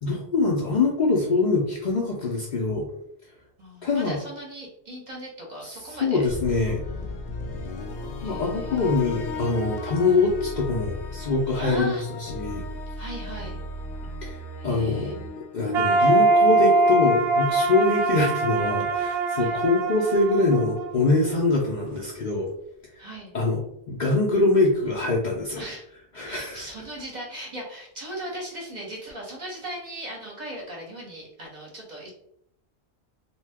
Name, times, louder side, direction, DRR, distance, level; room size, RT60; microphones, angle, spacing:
voice 1, 0.0-2.9 3.8-4.2 5.6-6.8 8.2-12.6 14.2-14.4 14.6-15.1 15.5-22.5 23.3-23.6 23.9-25.6 26.2-26.6, left 3 dB, 55° left, -2 dB, 0.6 m, -24 dB
voice 2, 3.6-6.2 6.9-7.4 8.2-9.1 11.6-12.0 13.0-13.6 14.6-15.4 19.3-19.6 23.0-23.3 25.6-25.9 26.2-32.1, right 1 dB, 45° right, -2 dB, 0.9 m, -38 dB
sound 1, 6.3-16.5, left 2 dB, 80° left, 0.9 m, -36 dB
sound 2, 15.7-21.6, right 2 dB, 70° right, 0.8 m, -23 dB
2.6 x 2.2 x 3.4 m, 0.74 s
omnidirectional pair, 1.1 m